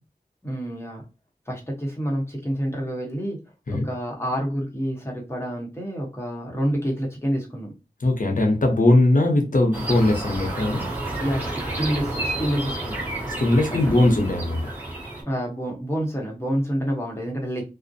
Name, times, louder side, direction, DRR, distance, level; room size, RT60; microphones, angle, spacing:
voice 1, 0.4-1.0 1.5-3.4 3.7-7.7 11.2-13.0 13.7-14.0 15.2-17.6, equal, 15° left, 0.9 m, -28 dB
voice 2, 8.0-10.8 13.4-14.6, left 2 dB, 55° left, 0.7 m, -20 dB
sound 1, 9.7-15.2, right 2 dB, 10° right, 1.1 m, -30 dB
2.4 x 2.0 x 2.6 m
wide cardioid pair, 60°, 16 cm